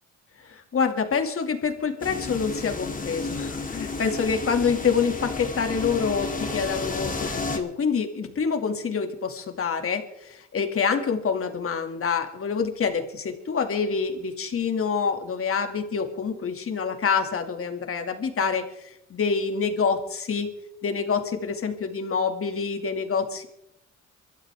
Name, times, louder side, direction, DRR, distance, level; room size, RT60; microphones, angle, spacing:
voice 1, 0.4-20.5 20.8-23.5, left 5 dB, 45° left, 6 dB, 2.5 m, -26 dB
sound 1, 2.0-7.6, left 3 dB, 25° left, 2.4 m, -32 dB
24.5 x 13.0 x 3.6 m, 0.81 s
cardioid pair, 90°, 30 cm